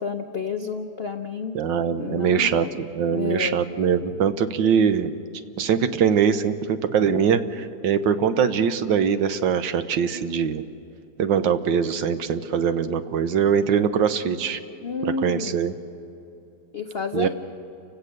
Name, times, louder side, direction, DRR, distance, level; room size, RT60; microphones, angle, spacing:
voice 1, 0.0-1.6 2.0-2.7 3.1-3.6 14.8-15.6 16.7-17.3, left 5 dB, 85° left, 5 dB, 0.5 m, -30 dB
voice 2, 1.5-5.1 5.6-10.6 11.2-14.6 15.0-15.7 17.1-17.3, right 7 dB, 70° right, 10 dB, 1.5 m, -22 dB
29.0 x 17.0 x 6.6 m, 2.8 s
omnidirectional pair, 2.3 m